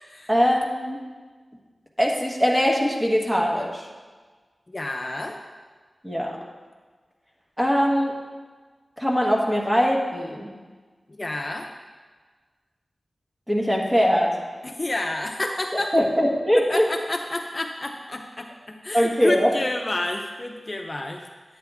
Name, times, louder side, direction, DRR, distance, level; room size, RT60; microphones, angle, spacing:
voice 1, 0.3-1.0 2.0-3.9 6.0-6.4 7.6-8.2 9.0-10.5 13.5-14.4 15.7-16.9 18.9-19.5, equal, 10° right, -1 dB, 1.6 m, -21 dB
voice 2, 4.7-5.4 11.1-11.7 14.6-15.9 16.7-21.2, left 2 dB, 35° left, 2 dB, 0.6 m, -29 dB
9.6 x 8.8 x 3.5 m, 1.4 s
wide cardioid pair, 60°, 0 cm